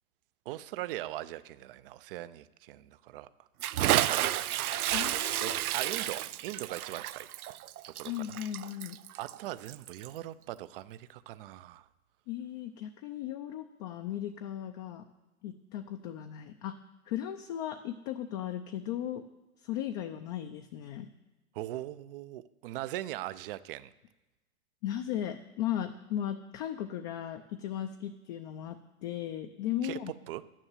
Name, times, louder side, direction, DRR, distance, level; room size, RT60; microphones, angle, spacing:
voice 1, 0.5-3.5 3.8-4.2 5.4-7.3 7.9-8.4 9.2-11.9 21.5-23.9 29.8-30.4, right 15 dB, 40° right, 16 dB, 0.5 m, -40 dB
Bathtub (filling or washing) / Splash splatter, 3.6-10.2, right 13 dB, 85° right, 0.6 m, -31 dB
voice 2, 4.9-5.6 8.0-9.0 12.3-15.1 15.4-16.8 17.1-19.3 19.6-21.1 24.8-30.1, left 11 dB, 30° left, 6 dB, 0.5 m, -36 dB
10.5 x 10.0 x 7.3 m, 1.1 s
hypercardioid pair, 140°, 43 cm